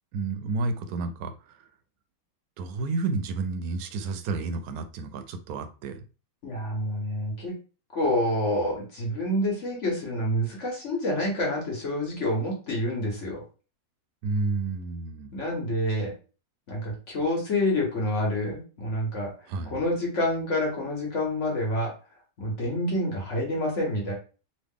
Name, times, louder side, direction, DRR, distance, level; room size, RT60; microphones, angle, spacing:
voice 1, 0.1-1.6 2.6-6.0 14.2-15.4 19.5-19.8, right 3 dB, 70° right, 1.0 m, -31 dB
voice 2, 6.4-7.5 7.9-13.4 15.3-16.1 16.7-21.9 22.4-24.1, left 1 dB, 50° left, 1.1 m, -28 dB
3.1 x 2.4 x 3.5 m
omnidirectional pair, 1.8 m